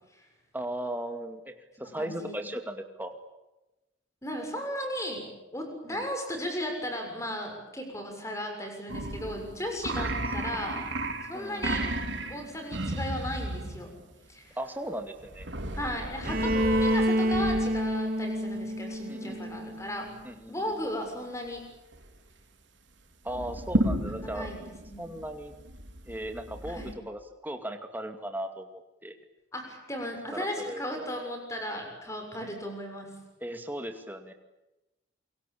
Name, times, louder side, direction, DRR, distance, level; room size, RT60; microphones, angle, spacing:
voice 1, 0.5-1.5 1.8-3.1 5.9-6.0 10.0-10.2 11.3-11.8 14.6-15.5 16.7-16.9 19.1-19.7 20.2-20.6 23.2-24.5 25.0-25.6 26.1-29.1 30.3-31.1 33.4-34.3, right 1 dB, 10° right, 6 dB, 2.3 m, -37 dB
voice 2, 1.8-2.4 4.2-5.3 5.5-10.8 11.2-11.9 12.3-13.9 14.3-14.6 15.7-20.1 20.5-21.6 24.1-25.1 26.7-26.9 29.5-33.2, equal, 15° left, 3 dB, 6.8 m, -36 dB
sound 1, 8.9-14.0 15.2-17.9 21.5-21.6 21.9-22.3 23.2-26.9, right 1 dB, 75° right, 3.6 m, -34 dB
Bowed string instrument, 16.2-20.1, equal, 50° right, 2.0 m, -28 dB
28.0 x 23.5 x 8.6 m, 1.0 s
head